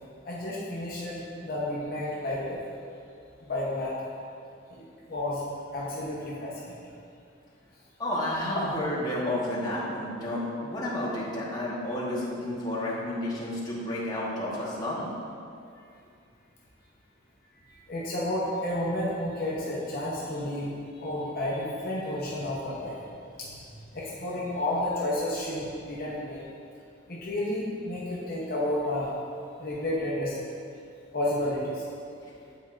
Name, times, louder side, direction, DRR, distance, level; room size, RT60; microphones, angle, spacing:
voice 1, 0.2-2.6 3.4-4.1 4.7-5.4 5.7-6.8 17.9-20.7 21.0-23.0 23.4-23.6 23.9-26.4 27.1-29.1 29.6-30.3 31.1-31.8, left 1 dB, 45° left, -6 dB, 0.8 m, -31 dB
voice 2, 8.0-15.1, left 1 dB, 20° left, -7 dB, 1.0 m, -31 dB
9.1 x 4.3 x 2.4 m, 2.4 s
head